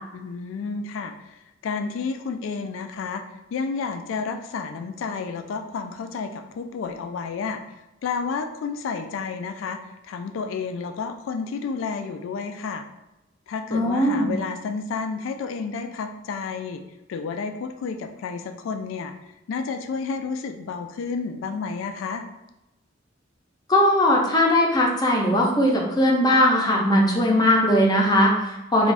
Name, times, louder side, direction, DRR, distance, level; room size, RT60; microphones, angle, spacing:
voice 1, 0.1-3.2 3.5-7.6 8.0-12.8 13.5-16.8 17.1-19.1 19.5-22.3, left 5 dB, 85° left, 8 dB, 0.3 m, -31 dB
voice 2, 13.7-14.3 23.7-28.9, left 1 dB, 20° left, -1 dB, 0.5 m, -19 dB
2.5 x 2.3 x 3.2 m, 0.97 s
head